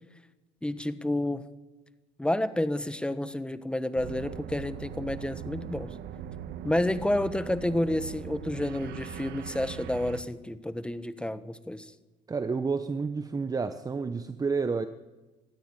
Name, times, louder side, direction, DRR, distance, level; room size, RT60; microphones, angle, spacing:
voice 1, 0.6-1.4 2.2-5.9 6.6-11.9, left 1 dB, 5° left, 1.2 m, -30 dB
sound 1, 4.0-10.2, right 9 dB, 80° right, 1.4 m, -40 dB
voice 2, 12.3-14.9, right 4 dB, 20° right, 0.9 m, -30 dB
24.0 x 13.5 x 9.7 m
cardioid pair, 110°, 17 cm